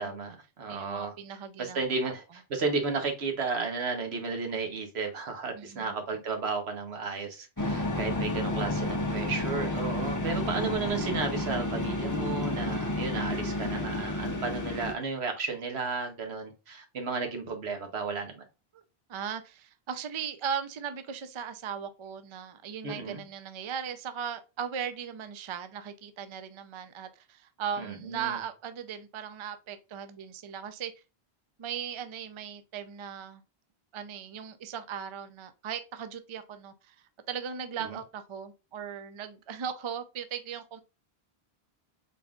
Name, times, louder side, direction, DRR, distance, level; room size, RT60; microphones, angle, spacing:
voice 1, 0.0-1.1 1.6-18.4 22.8-23.2 27.8-28.4 37.9-38.0, right 4 dB, 90° right, 1.3 m, -33 dB
voice 2, 0.7-1.8 5.6-5.9 18.7-18.8 19.1-30.9 31.6-33.4 33.9-37.0 37.3-40.8, right 8 dB, 45° right, 0.4 m, -38 dB
sound 1, 7.6-14.9, left 1 dB, 25° left, 0.5 m, -31 dB
4.0 x 3.5 x 2.3 m
omnidirectional pair, 1.1 m